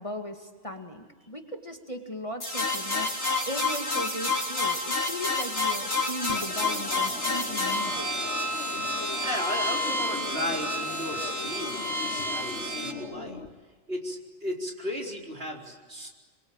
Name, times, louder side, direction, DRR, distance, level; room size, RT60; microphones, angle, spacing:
voice 1, 0.0-3.1 3.5-8.1, equal, 30° left, 3 dB, 2.2 m, -37 dB
sound 1, 2.4-12.9, left 2 dB, 60° left, 3.8 m, -29 dB
sound 2, 6.3-13.5, left 4 dB, 90° left, 1.9 m, -40 dB
voice 2, 9.2-13.4 13.9-16.1, equal, 60° right, 0 dB, 4.5 m, -35 dB
27.5 x 22.5 x 9.0 m, 1.4 s
omnidirectional pair, 1.2 m